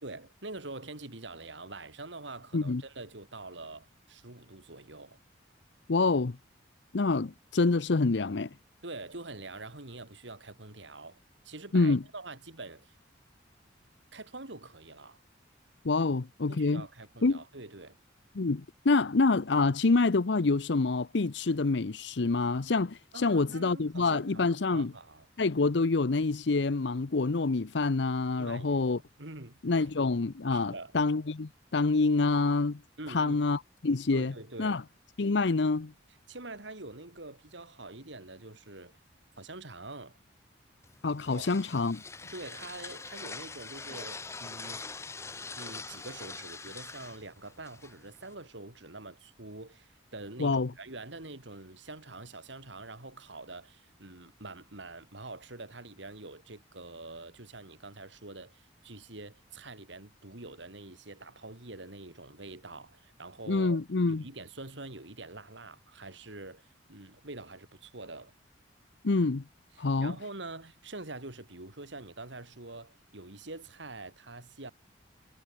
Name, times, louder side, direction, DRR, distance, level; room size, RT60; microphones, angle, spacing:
voice 1, 0.0-5.2 8.8-11.2 11.4-12.9 14.1-15.2 16.5-18.0 23.1-25.3 28.4-28.9 29.2-29.6 30.5-30.9 33.0-33.4 34.1-34.8 36.3-39.0 39.4-40.2 41.3-41.5 42.2-44.8 45.5-68.3 69.7-74.7, right 2 dB, 70° right, 3.3 m, -45 dB
voice 2, 5.9-6.4 6.9-8.5 11.7-12.0 15.8-16.8 17.2-17.4 18.3-24.9 25.4-29.0 29.6-32.8 33.1-34.3 34.6-34.8 35.2-35.9 41.0-42.0 50.4-50.7 63.5-64.2 69.0-69.4 69.8-70.1, left 3 dB, 65° left, 0.7 m, -27 dB
sound 1, 40.8-48.3, left 4 dB, 15° left, 0.5 m, -44 dB
head